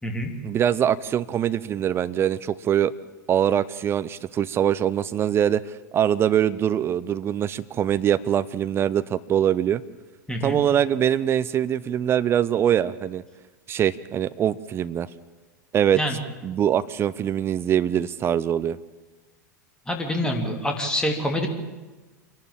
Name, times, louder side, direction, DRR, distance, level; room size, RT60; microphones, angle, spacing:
voice 1, 0.4-2.9 3.3-5.6 5.9-9.8 10.4-13.2 13.7-15.1 15.7-16.0 16.4-18.8, right 10 dB, 25° right, 15 dB, 0.6 m, -23 dB
voice 2, 10.3-10.6 15.9-16.2 19.9-21.5, equal, 10° left, 3 dB, 3.1 m, -26 dB
26.5 x 11.5 x 8.9 m, 1.2 s
figure-of-eight pair, 90°, 10 cm